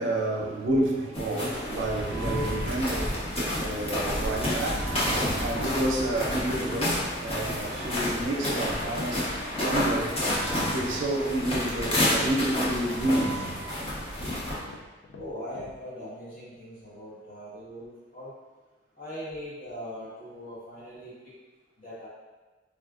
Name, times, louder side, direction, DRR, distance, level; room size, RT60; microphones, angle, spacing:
voice 1, 0.0-14.0 14.3-14.4, right 1 dB, 80° right, 0.5 m, -30 dB
sound 1, 1.1-14.6, left 1 dB, 30° left, 0.6 m, -30 dB
sound 2, 9.3-15.8, left 3 dB, 70° left, 0.3 m, -47 dB
voice 2, 15.1-18.3 18.9-21.1 21.8-22.1, equal, 45° left, 1.2 m, -40 dB
3.5 x 2.3 x 2.4 m
head